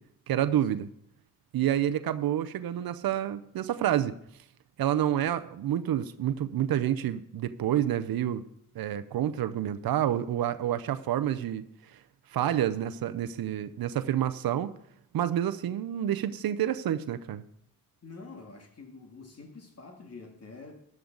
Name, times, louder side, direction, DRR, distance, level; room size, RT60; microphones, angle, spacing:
voice 1, 0.3-0.9 1.5-4.2 4.8-8.4 8.8-11.6 12.3-14.7 15.1-17.4, right 11 dB, 90° right, 0.6 m, -28 dB
voice 2, 18.0-20.9, left 3 dB, 45° left, 1.8 m, -47 dB
14.0 x 11.0 x 3.9 m
wide cardioid pair, 105°, 35 cm